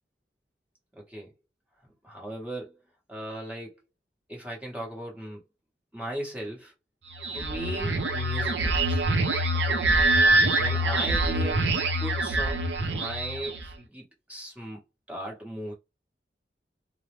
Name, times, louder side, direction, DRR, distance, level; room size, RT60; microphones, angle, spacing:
voice 1, 1.0-1.3 2.0-2.8 3.1-3.8 4.3-5.4 5.9-6.7 7.3-9.0 9.5-9.8 10.3-15.7, right 1 dB, 10° right, 1.0 m, -38 dB
sound 1, 7.1-13.7, right 2 dB, 70° right, 0.6 m, -25 dB
2.4 x 2.0 x 3.1 m
head